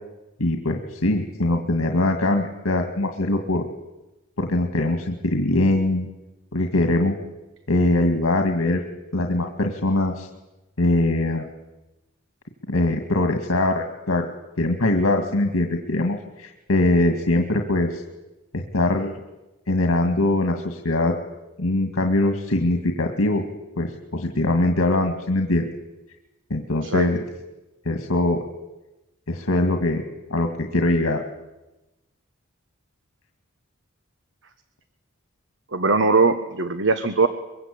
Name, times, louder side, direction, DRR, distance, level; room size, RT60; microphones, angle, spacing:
voice 1, 0.4-3.6 4.4-6.1 6.5-7.2 7.7-8.8 9.1-10.3 10.8-11.5 12.7-14.3 14.6-18.0 18.5-19.1 19.7-21.1 21.6-23.5 23.8-25.7 26.5-27.2 27.9-28.4 29.3-30.0 30.3-31.2, left 1 dB, 80° left, 4 dB, 2.1 m, -22 dB
voice 2, 35.7-37.3, right 3 dB, 60° right, 9 dB, 1.3 m, -20 dB
23.0 x 23.0 x 8.6 m, 1.0 s
head